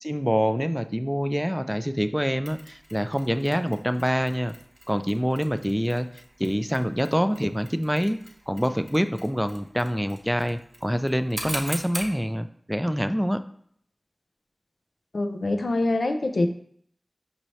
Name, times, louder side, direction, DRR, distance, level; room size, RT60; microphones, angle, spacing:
voice 1, 0.0-4.5 4.9-6.1 6.4-8.2 8.5-13.4, equal, ahead, 10 dB, 0.3 m, -26 dB
Mechanisms, 2.5-12.2, right 1 dB, 55° right, 0.9 m, -42 dB
voice 2, 15.1-16.5, left 2 dB, 90° left, 7 dB, 0.4 m, -24 dB
5.3 x 2.7 x 3.1 m, 0.64 s
wide cardioid pair, 40°, 0 cm